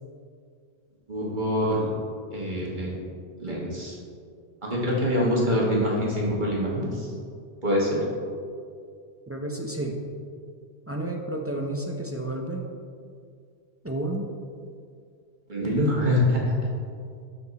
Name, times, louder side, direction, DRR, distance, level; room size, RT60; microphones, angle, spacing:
voice 1, 1.1-1.9 2.3-3.0 3.4-3.9 4.6-7.1 7.6-8.0 15.5-16.5, equal, 45° right, -4 dB, 1.6 m, -25 dB
voice 2, 9.3-10.0 10.9-12.6 13.8-14.3, right 1 dB, 15° right, 0 dB, 0.5 m, -31 dB
12.0 x 4.4 x 4.1 m, 2.2 s
omnidirectional pair, 1.1 m